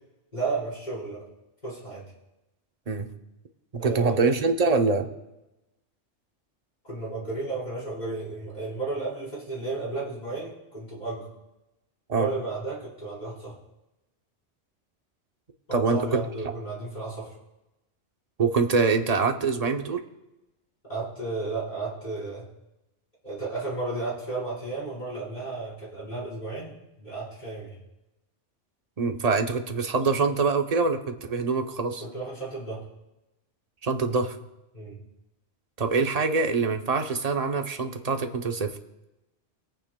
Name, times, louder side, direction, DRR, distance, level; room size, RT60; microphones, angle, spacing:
voice 1, 0.3-1.2 1.6-2.1 3.8-4.2 6.8-11.3 12.2-13.5 15.7-17.3 20.9-22.5 23.2-27.8 32.0-32.8 34.7-35.0, right 3 dB, 35° left, -8 dB, 4.6 m, -33 dB
voice 2, 3.7-5.1 12.1-12.3 15.7-16.2 18.4-20.0 29.0-32.1 33.8-34.4 35.8-38.8, right 4 dB, 35° right, 5 dB, 0.8 m, -24 dB
23.5 x 8.8 x 2.2 m, 0.96 s
omnidirectional pair, 1.2 m